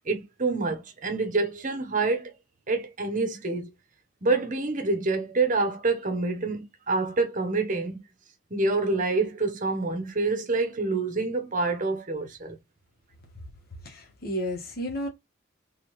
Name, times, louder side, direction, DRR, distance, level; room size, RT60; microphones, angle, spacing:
voice 1, 0.0-2.3 2.7-3.7 4.2-8.0 8.5-12.6, right 3 dB, 35° right, 0.9 m, -27 dB
voice 2, 13.8-15.1, equal, 45° left, 1.4 m, -32 dB
3.5 x 3.4 x 3.1 m
head